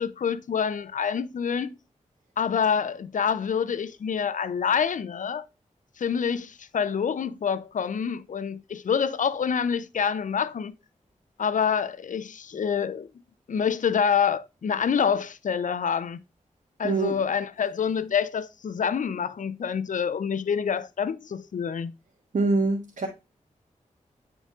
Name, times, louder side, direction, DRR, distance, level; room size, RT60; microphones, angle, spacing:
voice 1, 0.0-1.7 2.4-5.5 6.0-10.7 11.4-13.1 13.5-16.2 16.8-21.9, left 7 dB, 70° left, 0.6 m, -27 dB
voice 2, 16.8-17.1 22.3-23.1, right 3 dB, 70° right, 1.4 m, -24 dB
9.2 x 3.9 x 3.6 m
cardioid pair, 55°, 14 cm